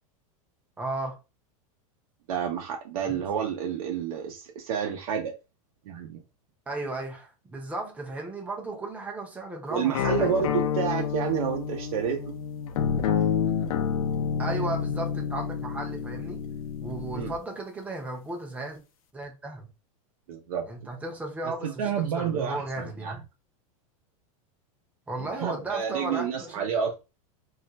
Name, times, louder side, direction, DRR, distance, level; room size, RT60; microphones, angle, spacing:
voice 1, 0.8-1.2 3.1-3.2 6.7-10.5 14.4-16.4 16.8-18.8 19.1-19.7 20.7-23.2 25.1-26.7, right 2 dB, 10° right, 0.5 m, -35 dB
voice 2, 2.3-5.3 5.9-6.2 9.7-12.3 14.5-14.6 17.1-17.3 20.3-20.7 21.6-23.2 25.2-27.0, right 7 dB, 85° right, 0.6 m, -29 dB
sound 1, 9.9-17.4, left 7 dB, 85° left, 0.6 m, -29 dB
2.4 x 2.1 x 3.9 m
supercardioid pair, 155°, 18 cm